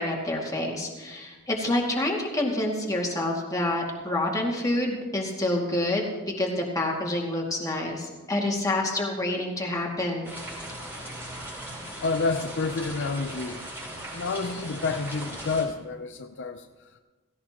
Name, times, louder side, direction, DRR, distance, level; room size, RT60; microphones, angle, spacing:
voice 1, 0.0-10.3, left 1 dB, 15° left, -2 dB, 2.2 m, -28 dB
sound 1, 10.2-15.6, right 1 dB, 10° right, 4.6 m, -38 dB
voice 2, 12.0-13.7 14.1-16.9, left 4 dB, 55° left, 7 dB, 0.5 m, -29 dB
16.5 x 16.5 x 2.9 m, 1.3 s
head